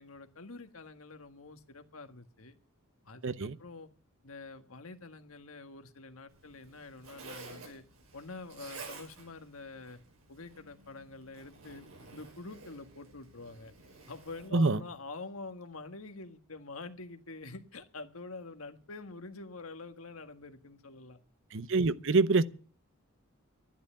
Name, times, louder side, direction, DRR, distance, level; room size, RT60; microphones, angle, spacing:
voice 1, 0.0-2.6 3.0-3.9 4.2-7.8 8.1-10.0 10.3-13.7 14.1-21.2, left 3 dB, 85° left, 1.6 m, -46 dB
voice 2, 3.2-3.5 14.5-14.8 21.5-22.4, right 3 dB, 65° right, 0.8 m, -26 dB
Zipper (clothing), 6.3-14.5, right 3 dB, 80° right, 5.7 m, -51 dB
12.5 x 11.0 x 8.7 m
head